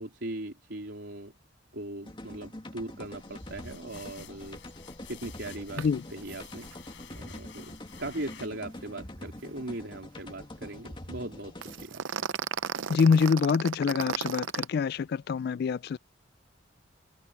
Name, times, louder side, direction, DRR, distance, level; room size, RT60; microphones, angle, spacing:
voice 1, 0.0-1.3 1.7-4.6 5.1-6.7 7.2-12.3, right 1 dB, 65° right, 3.9 m, -39 dB
sound 1, 2.0-11.8, left 1 dB, 25° left, 2.3 m, -45 dB
sound 2, 3.0-8.9, left 7 dB, 70° left, 5.2 m, -51 dB
sound 3, 5.8-5.9 6.2-6.4 6.6-6.7 11.6-14.7, right 6 dB, 85° right, 0.7 m, -33 dB
voice 2, 12.9-16.0, left 5 dB, 55° left, 0.3 m, -25 dB
head